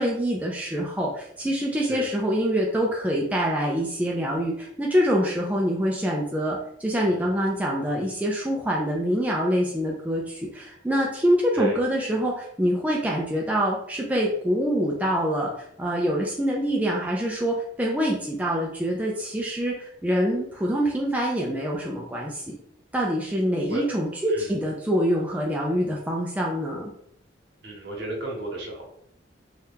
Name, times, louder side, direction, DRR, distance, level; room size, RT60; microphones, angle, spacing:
voice 1, 0.0-15.5 15.8-22.6 22.9-26.9, equal, 10° right, -3 dB, 0.4 m, -25 dB
voice 2, 27.6-28.8, right 1 dB, 65° right, -1 dB, 1.0 m, -32 dB
2.8 x 2.3 x 3.5 m, 0.71 s
head